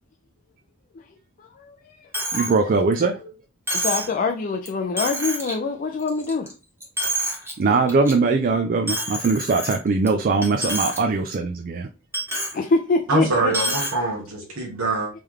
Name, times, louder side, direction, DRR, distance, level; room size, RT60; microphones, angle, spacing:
voice 1, 1.6-2.5 3.7-6.5 12.5-13.5, left 4 dB, 40° left, 0.4 m, -25 dB
Coin (dropping), 2.1-2.5 2.9-3.0 3.7-4.1 4.6-4.7 5.0-5.5 6.0-6.5 6.8-7.5 7.9-8.1 8.9-10.1 10.4-11.0 11.3-11.4 12.1-12.6 13.5-13.9, right 1 dB, 10° right, 1.3 m, -27 dB
voice 2, 2.3-3.2 7.6-11.9, right 4 dB, 40° right, 0.3 m, -21 dB
voice 3, 13.1-15.1, right 2 dB, 75° right, 1.3 m, -24 dB
3.4 x 3.1 x 3.6 m
head